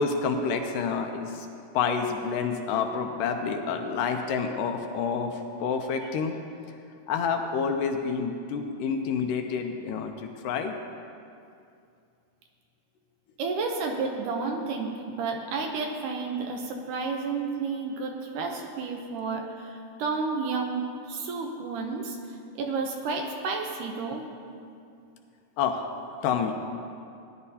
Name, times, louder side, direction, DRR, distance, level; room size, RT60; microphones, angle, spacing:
voice 1, 0.0-1.5 1.7-6.3 7.1-10.8 25.6-25.9 26.2-26.5, left 5 dB, 80° left, 4 dB, 2.1 m, -28 dB
voice 2, 13.4-24.2, right 4 dB, 75° right, 2 dB, 2.1 m, -31 dB
17.0 x 10.5 x 2.8 m, 2.5 s
omnidirectional pair, 4.1 m